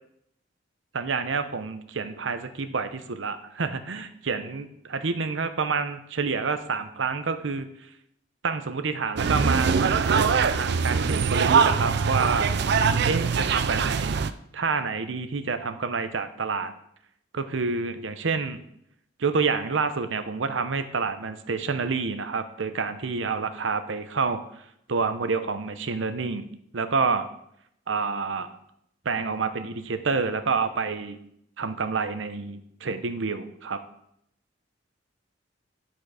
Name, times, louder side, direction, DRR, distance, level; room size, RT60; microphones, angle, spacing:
voice 1, 0.9-7.7 8.4-12.5 13.0-14.2 14.5-16.7 17.3-18.6 19.2-24.4 24.9-26.4 26.7-27.3 27.9-28.6 29.0-31.2 31.6-33.8, right 4 dB, 90° right, 10 dB, 0.7 m, -28 dB
sound 1, 9.2-14.3, right 5 dB, 60° right, 0.4 m, -23 dB
10.0 x 4.5 x 4.8 m, 0.73 s
head